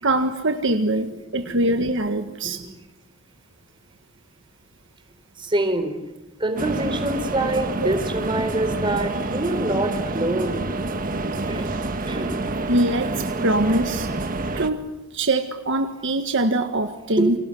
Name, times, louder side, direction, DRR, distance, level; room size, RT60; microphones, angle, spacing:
voice 1, 0.0-2.6 12.7-14.1 14.6-14.8 15.1-17.4, right 1 dB, 60° right, 6 dB, 1.7 m, -23 dB
voice 2, 5.4-6.0 6.4-10.6 11.5-11.7 12.1-12.4 17.2-17.3, right 1 dB, 25° right, 7 dB, 4.0 m, -25 dB
sound 1, 6.6-14.7, right 2 dB, 40° right, 1.7 m, -27 dB
30.0 x 24.5 x 7.9 m, 1.0 s
head